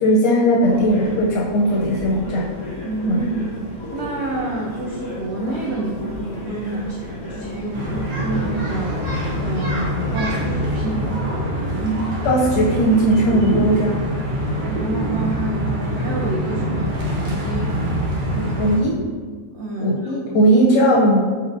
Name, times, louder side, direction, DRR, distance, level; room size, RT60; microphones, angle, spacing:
voice 1, 0.0-2.5 3.1-3.2 11.8-12.0 12.2-14.0 18.4-19.0 19.8-21.2, right 1 dB, 90° left, -3 dB, 1.3 m, -18 dB
sound 1, 0.6-11.2, left 1 dB, 25° left, 0.7 m, -34 dB
voice 2, 2.8-11.2 14.7-17.7 18.6-18.7 19.5-20.4, right 2 dB, 90° right, -2 dB, 0.5 m, -28 dB
sound 2, 7.7-18.8, equal, 70° right, 1.5 m, -24 dB
4.4 x 4.4 x 2.5 m, 1.5 s
omnidirectional pair, 1.8 m